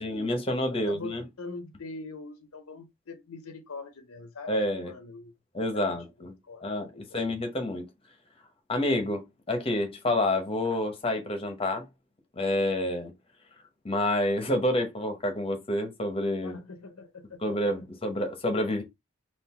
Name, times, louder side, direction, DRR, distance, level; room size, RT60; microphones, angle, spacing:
voice 1, 0.0-1.2 4.5-4.9 5.5-6.3 6.6-7.9 8.7-11.9 12.4-13.1 13.8-16.6 17.4-18.8, left 1 dB, 25° left, 0.8 m, -28 dB
voice 2, 0.7-5.3 5.7-7.2 16.4-17.4 17.8-17.9, left 3 dB, 70° left, 0.6 m, -43 dB
3.8 x 2.5 x 4.2 m
head